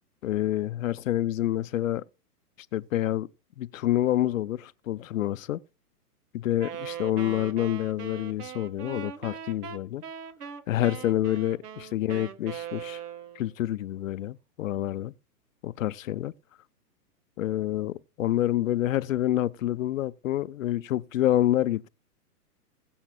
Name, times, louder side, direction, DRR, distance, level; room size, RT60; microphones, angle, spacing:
voice 1, 0.2-2.0 2.7-3.3 3.6-5.6 6.3-10.0 10.7-13.0 13.4-15.1 15.6-16.3 17.4-21.9, left 13 dB, 55° left, 0.6 m, -27 dB
Wind instrument woodwind instrument, 6.6-13.5, right 8 dB, 75° right, 1.4 m, -40 dB
21.0 x 7.2 x 2.3 m
hypercardioid pair, 145°, 47 cm